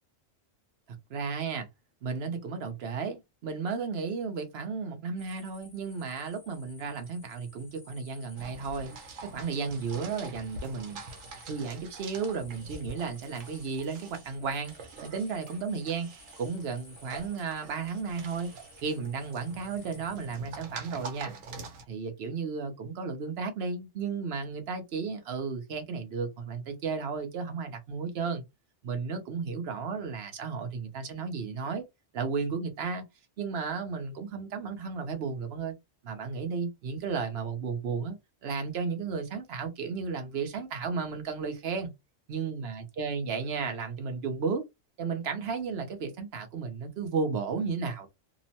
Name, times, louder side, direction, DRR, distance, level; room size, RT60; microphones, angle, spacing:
voice 1, 1.1-1.7 2.0-11.0 11.5-14.7 15.0-16.1 16.4-18.5 18.8-21.3 21.9-28.4 28.8-31.8 32.1-33.0 33.4-35.7 36.0-38.2 38.4-41.9 42.3-44.6 45.0-48.1, right 5 dB, 60° right, 0.9 m, -33 dB
sound 1, 5.2-20.4, left 2 dB, 15° left, 0.6 m, -56 dB
sound 2, 8.4-21.8, right 3 dB, 85° right, 1.1 m, -46 dB
2.9 x 2.0 x 2.7 m
omnidirectional pair, 1.3 m